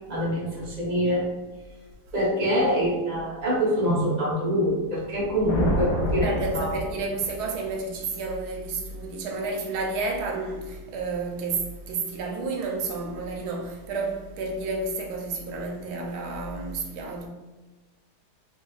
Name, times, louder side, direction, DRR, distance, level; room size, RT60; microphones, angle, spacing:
voice 1, 0.1-1.2 2.1-6.3 6.5-6.7, equal, 40° right, 0.6 m, -25 dB
sound 1, 5.1-7.6, left 1 dB, 65° left, 0.7 m, -29 dB
voice 2, 6.2-17.3, right 3 dB, 75° right, 1.0 m, -31 dB
2.8 x 2.6 x 2.3 m
omnidirectional pair, 1.8 m